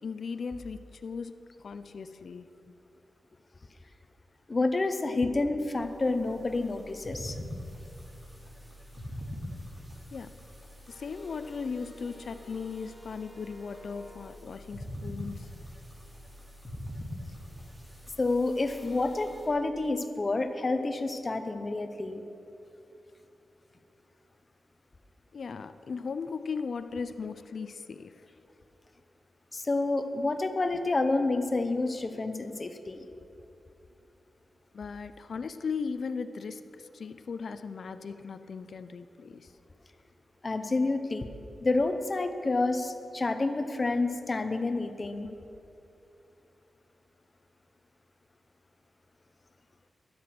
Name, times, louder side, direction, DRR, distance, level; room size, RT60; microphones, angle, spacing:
voice 1, 0.0-2.7 10.1-10.4 10.9-15.5 25.3-28.2 34.7-39.5, left 5 dB, 60° left, 10 dB, 0.5 m, -37 dB
voice 2, 4.5-7.4 18.2-22.2 29.5-33.1 40.4-41.3 41.6-45.3, left 2 dB, 30° left, 8 dB, 0.8 m, -29 dB
sound 1, 5.8-19.5, equal, 10° right, 3.1 m, -44 dB
13.0 x 11.0 x 6.0 m, 2.8 s
wide cardioid pair, 115°, 0 cm